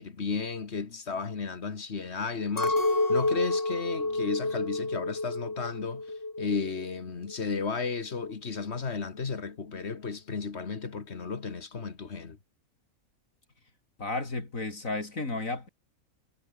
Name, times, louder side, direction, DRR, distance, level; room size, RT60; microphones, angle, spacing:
voice 1, 0.0-2.8 3.1-6.0 6.4-12.4, left 5 dB, 50° left, 1.9 m, -34 dB
Chink clink, 2.6-6.9 7.2-8.0, left 2 dB, 15° left, 1.1 m, -29 dB
Keyboard (musical), 2.7-5.4, right 2 dB, 55° right, 5.5 m, -44 dB
voice 2, 14.0-15.7, left 2 dB, 70° left, 4.4 m, -33 dB
omnidirectional pair, 1.5 m